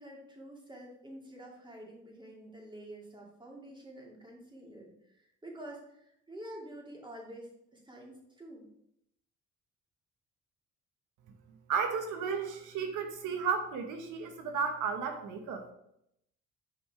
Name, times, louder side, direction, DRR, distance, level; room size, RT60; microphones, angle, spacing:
voice 1, 0.0-8.7, right 1 dB, 15° right, -1 dB, 2.3 m, -48 dB
voice 2, 11.7-15.7, right 6 dB, 85° right, 6 dB, 0.9 m, -33 dB
5.5 x 5.3 x 4.7 m, 0.77 s
cardioid pair, 90°, 30 cm